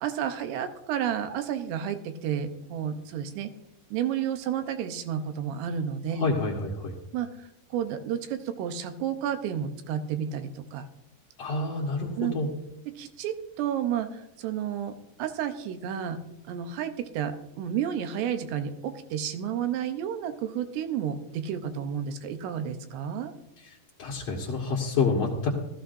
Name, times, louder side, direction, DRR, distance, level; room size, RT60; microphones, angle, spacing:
voice 1, 0.0-3.5 3.9-6.3 7.1-7.3 7.7-10.9 12.2-12.4 12.9-16.2 16.5-23.3, right 9 dB, 80° right, 8 dB, 2.8 m, -31 dB
voice 2, 6.2-6.9 11.4-12.5 24.0-25.5, left 3 dB, 60° left, -4 dB, 1.7 m, -28 dB
17.5 x 14.0 x 2.6 m, 0.85 s
omnidirectional pair, 5.1 m